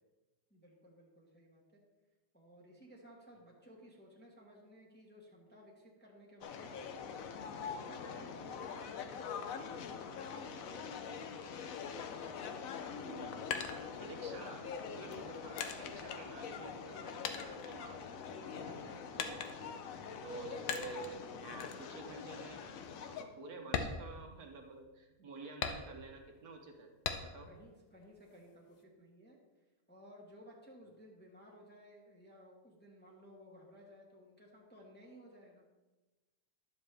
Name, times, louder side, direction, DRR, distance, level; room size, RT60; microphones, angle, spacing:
voice 1, 0.5-1.8 2.3-6.8 7.3-11.4 19.8-20.2 27.4-29.4 29.9-35.6, equal, 5° left, -3 dB, 1.2 m, -57 dB
sound 1, 6.4-23.2, left 6 dB, 65° left, 1.0 m, -44 dB
sound 2, 13.0-14.5 15.1-17.0 17.2-18.4 19.2-19.8 20.7-21.2 21.6-21.9 22.3-22.4 22.8-23.0 23.6-24.8 25.6-26.3 27.0-27.6 28.0-28.8, left 6 dB, 85° left, 1.3 m, -41 dB
voice 2, 13.0-13.5 14.0-19.4 20.2-22.6 23.1-26.9 27.2-27.5, right 3 dB, 65° right, 3 dB, 1.4 m, -50 dB
11.0 x 7.0 x 3.4 m, 1.2 s
omnidirectional pair, 1.8 m